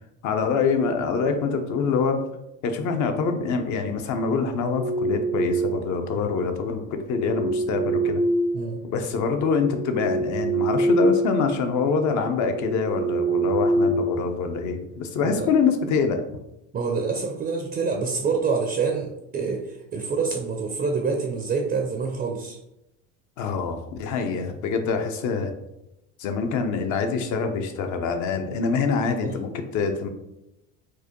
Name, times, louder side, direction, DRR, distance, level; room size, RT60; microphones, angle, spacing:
voice 1, 0.2-2.2 2.6-8.2 8.8-16.2 23.4-25.5 26.2-30.1, left 5 dB, 50° left, 6 dB, 0.7 m, -25 dB
sound 1, 4.4-5.9 6.9-9.0 9.5-11.4 11.7-11.9 12.4-14.8, right 2 dB, 85° right, 0.9 m, -25 dB
voice 2, 16.7-22.6 29.2-29.3, right 5 dB, 25° right, 2 dB, 0.5 m, -27 dB
4.6 x 2.2 x 2.9 m, 0.88 s
hypercardioid pair, 90°, 39 cm